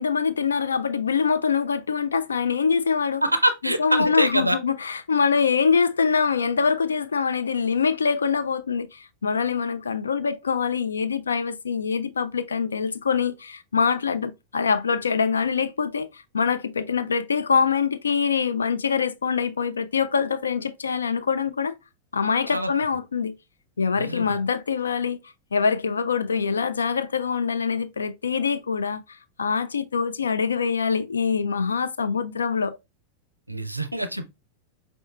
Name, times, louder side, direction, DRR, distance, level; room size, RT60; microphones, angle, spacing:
voice 1, 0.0-3.2 3.6-21.8 22.1-23.4 23.8-25.2 25.5-29.0 29.4-32.8, left 6 dB, 70° left, 0.4 m, -24 dB
voice 2, 3.2-4.6 22.5-22.7 23.9-24.4 33.5-34.3, right 1 dB, 85° right, 0.4 m, -25 dB
5.3 x 2.6 x 2.2 m
figure-of-eight pair, 90°, 0 cm